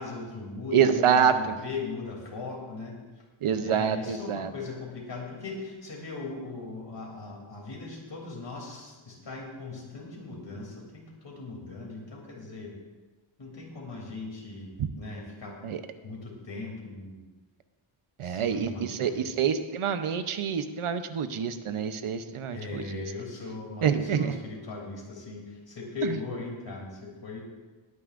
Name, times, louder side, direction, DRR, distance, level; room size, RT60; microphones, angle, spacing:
voice 1, 0.0-3.0 3.6-12.7 13.4-15.6 16.0-17.2 18.2-19.3 22.5-27.4, left 3 dB, 55° left, -2 dB, 3.1 m, -39 dB
voice 2, 0.7-1.5 3.4-4.5 14.8-14.9 15.6-15.8 18.2-23.0 23.8-24.3 26.0-26.2, right 8 dB, 80° right, 10 dB, 0.8 m, -26 dB
19.5 x 9.5 x 2.5 m, 1.3 s
wide cardioid pair, 155°, 50 cm